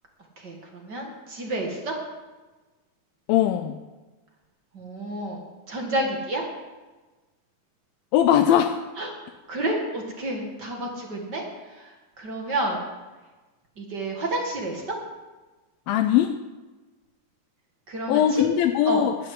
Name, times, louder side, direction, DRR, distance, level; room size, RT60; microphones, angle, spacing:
voice 1, 0.8-1.9 4.7-6.4 9.0-9.1 9.5-11.4 12.2-12.8 13.8-15.0 17.9-18.6 18.9-19.0, right 1 dB, 35° right, 1 dB, 1.9 m, -30 dB
voice 2, 3.3-3.8 8.1-8.8 15.9-16.3 18.1-19.2, left 10 dB, 80° left, 6 dB, 2.4 m, -20 dB
11.5 x 8.6 x 9.7 m, 1.2 s
omnidirectional pair, 4.2 m